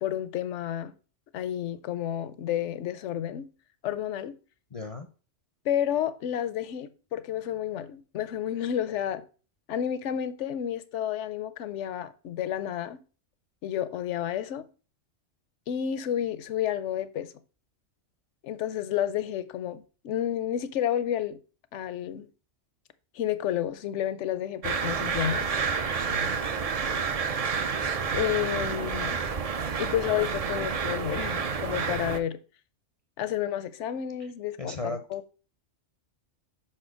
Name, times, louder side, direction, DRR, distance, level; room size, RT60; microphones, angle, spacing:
voice 1, 0.0-0.9 1.3-3.5 3.8-4.3 5.6-9.2 9.7-13.0 13.6-14.7 15.7-17.3 18.4-21.4 21.7-22.3 23.1-25.5 28.1-29.2 29.8-32.4 33.2-35.3, left 10 dB, 75° left, 1.0 m, -30 dB
voice 2, 4.7-5.1 26.0-26.4 34.6-35.0, left 2 dB, 40° left, 0.6 m, -36 dB
sound 1, 24.6-32.2, right 5 dB, 45° right, 0.5 m, -29 dB
5.6 x 4.3 x 6.2 m
omnidirectional pair, 1.3 m